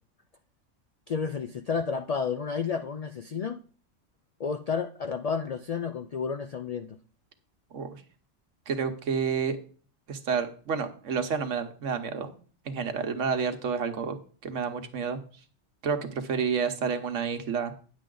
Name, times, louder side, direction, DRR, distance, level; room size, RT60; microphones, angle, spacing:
voice 1, 1.1-3.6 4.4-7.0, left 5 dB, 75° left, 9 dB, 0.3 m, -31 dB
voice 2, 8.7-9.6 10.1-12.3 12.6-14.2 14.4-15.2 15.8-17.7, right 6 dB, 80° right, 8 dB, 1.4 m, -29 dB
10.0 x 7.3 x 3.8 m, 0.41 s
omnidirectional pair, 1.3 m